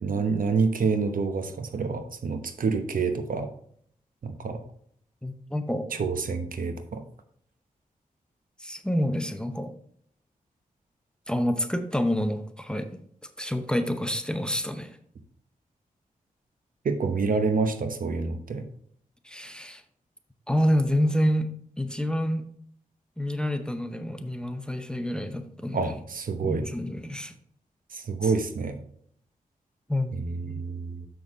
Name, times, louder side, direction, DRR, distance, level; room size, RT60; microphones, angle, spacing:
voice 1, 0.0-3.5 4.2-4.6 5.9-7.0 16.8-18.7 25.7-26.7 27.9-28.8 30.1-31.1, right 4 dB, 70° right, 8 dB, 0.9 m, -28 dB
voice 2, 5.2-5.9 8.6-9.7 11.3-13.0 13.4-15.0 19.2-19.8 20.5-21.5 21.8-22.5 23.2-25.9 26.4-27.3 29.9-30.1 30.4-30.6, equal, 5° left, 8 dB, 0.8 m, -28 dB
6.9 x 6.3 x 3.6 m, 0.65 s
wide cardioid pair, 80°, 15 cm